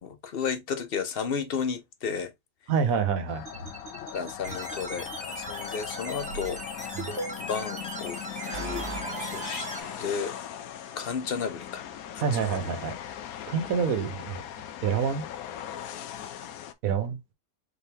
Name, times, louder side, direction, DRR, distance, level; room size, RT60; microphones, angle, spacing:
voice 1, 0.0-2.3 3.9-7.0 7.5-8.2 8.6-8.9 9.2-9.7 10.0-10.3 11.0-11.9 12.3-12.6, left 6 dB, 50° left, 0.8 m, -33 dB
voice 2, 2.7-3.4 6.9-7.1 12.2-12.9 13.5-14.4 14.8-15.2 16.8-17.2, right 6 dB, 75° right, 1.3 m, -27 dB
sound 1, 3.3-16.7, left 10 dB, 85° left, 1.1 m, -39 dB
sound 2, 3.5-5.2 6.1-7.6 8.2-10.4, right 3 dB, 55° right, 1.2 m, -39 dB
sound 3, 4.4-9.8, right 1 dB, 5° right, 1.0 m, -40 dB
4.4 x 3.5 x 2.8 m
omnidirectional pair, 1.5 m